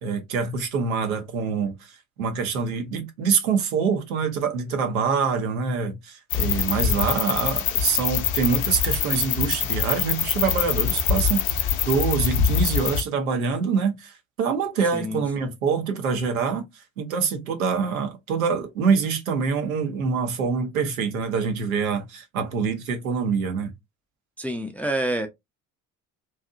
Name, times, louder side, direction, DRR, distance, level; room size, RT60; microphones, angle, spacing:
voice 1, 0.0-16.6 17.0-23.7, right 5 dB, 85° right, 0.7 m, -25 dB
sound 1, 6.3-13.0, left 8 dB, 50° left, 0.6 m, -24 dB
voice 2, 14.9-15.5 24.4-25.3, right 1 dB, 5° left, 0.4 m, -28 dB
2.7 x 2.4 x 2.4 m
hypercardioid pair, 60°, 41 cm